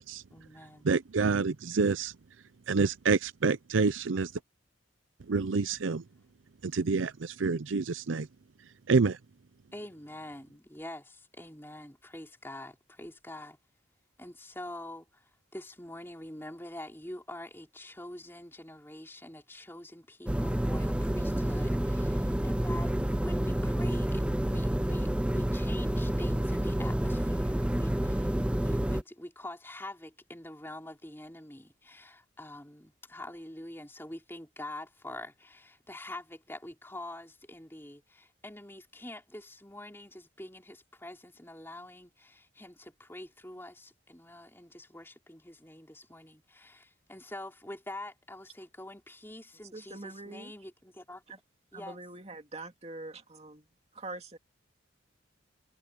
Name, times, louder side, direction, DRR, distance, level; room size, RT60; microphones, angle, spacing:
voice 1, 0.3-0.9 9.7-13.6 14.2-51.2 51.7-52.0, left 1 dB, 10° left, 3.8 m, -45 dB
voice 2, 0.9-2.1 2.7-4.3 5.3-6.0 6.6-8.3 8.9-9.2, right 4 dB, 80° right, 0.6 m, -27 dB
sound 1, 20.3-29.0, right 1 dB, 5° right, 0.3 m, -29 dB
voice 3, 49.7-50.5 51.7-53.7 53.9-54.4, right 2 dB, 30° right, 2.7 m, -43 dB
head